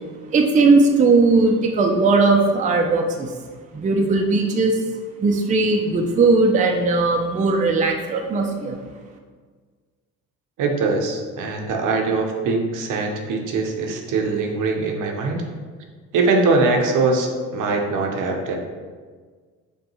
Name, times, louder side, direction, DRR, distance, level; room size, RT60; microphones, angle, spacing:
voice 1, 0.3-3.3 3.7-4.8 5.2-8.8, right 3 dB, 25° right, 3 dB, 0.4 m, -18 dB
voice 2, 10.6-15.4 16.1-18.6, right 3 dB, 70° right, 2 dB, 0.7 m, -22 dB
5.2 x 2.2 x 2.9 m, 1.5 s
cardioid pair, 95°, 32 cm